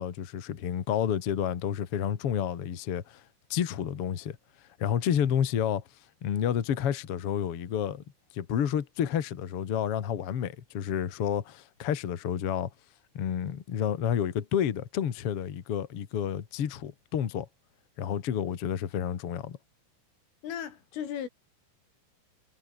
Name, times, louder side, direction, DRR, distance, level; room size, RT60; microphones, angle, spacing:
voice 1, 0.0-3.2 3.5-4.4 4.8-5.8 6.2-8.0 8.3-12.7 13.1-17.5 18.0-19.6, left 9 dB, 60° left, 1.5 m, -30 dB
voice 2, 20.4-21.3, left 9 dB, 90° left, 5.9 m, -36 dB
omnidirectional pair, 5.5 m